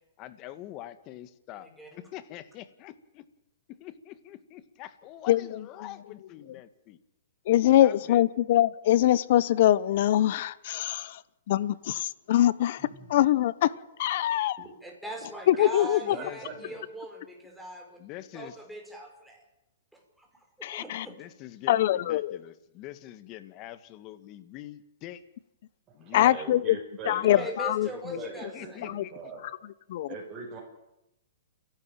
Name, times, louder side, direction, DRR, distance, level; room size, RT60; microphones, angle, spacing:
voice 1, 0.2-3.2 3.8-7.0 7.8-8.2 16.0-16.8 18.0-18.6 20.9-25.2 25.9-26.4 27.1-27.5 28.4-29.1, left 13 dB, 35° left, 12 dB, 1.9 m, -44 dB
voice 2, 1.5-2.1 14.8-18.0 18.3-19.4 19.9-20.3 20.6-21.2 27.4-28.8, right 1 dB, ahead, 0 dB, 6.0 m, -41 dB
voice 3, 5.3-5.6 7.5-11.2 11.5-13.7 14.0-14.6 15.5-16.2 20.6-21.1 21.7-22.4 26.1-26.8 27.0-28.2 28.8-29.0 29.9-30.1, left 13 dB, 55° left, 18 dB, 1.1 m, -23 dB
voice 4, 16.1-16.8 25.9-27.5 27.7-29.5 30.1-30.6, right 4 dB, 25° right, -2 dB, 5.7 m, -42 dB
29.0 x 12.0 x 9.0 m, 0.89 s
hypercardioid pair, 135°, 0 cm